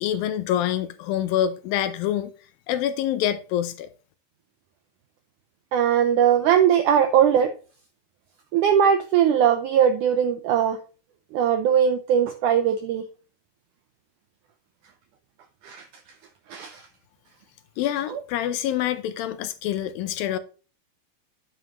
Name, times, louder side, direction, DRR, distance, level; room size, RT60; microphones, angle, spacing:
voice 1, 0.0-2.3 2.7-3.9 17.8-20.4, left 11 dB, 80° left, 2.2 m, -26 dB
voice 2, 5.7-7.5 8.5-10.8 11.3-13.0 15.6-15.8 16.5-16.8, right 8 dB, 90° right, 1.8 m, -20 dB
9.7 x 7.7 x 3.0 m
omnidirectional pair, 4.5 m